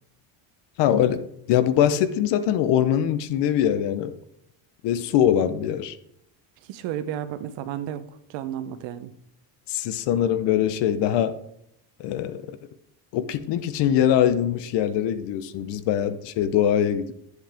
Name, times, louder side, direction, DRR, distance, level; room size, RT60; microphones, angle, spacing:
voice 1, 0.8-4.2 4.8-6.0 9.7-11.4 12.0-12.5 13.1-17.1, left 10 dB, 70° left, 0.9 m, -22 dB
voice 2, 6.7-8.0 8.3-9.1, right 10 dB, 80° right, 0.9 m, -32 dB
10.5 x 7.8 x 3.5 m
cardioid pair, 115°, 43 cm